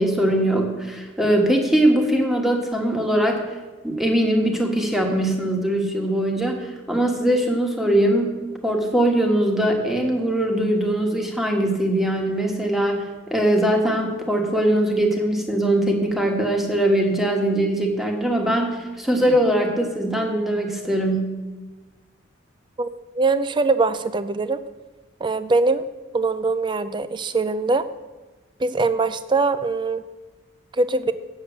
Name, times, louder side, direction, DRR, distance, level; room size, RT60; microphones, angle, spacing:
voice 1, 0.0-3.4 3.8-8.3 8.6-21.4, right 1 dB, ahead, 1 dB, 1.3 m, -21 dB
voice 2, 23.1-24.6 25.2-25.8 26.1-27.9 28.6-30.0 30.7-31.1, right 3 dB, 20° right, 13 dB, 0.4 m, -22 dB
8.0 x 6.9 x 8.0 m, 1.2 s
head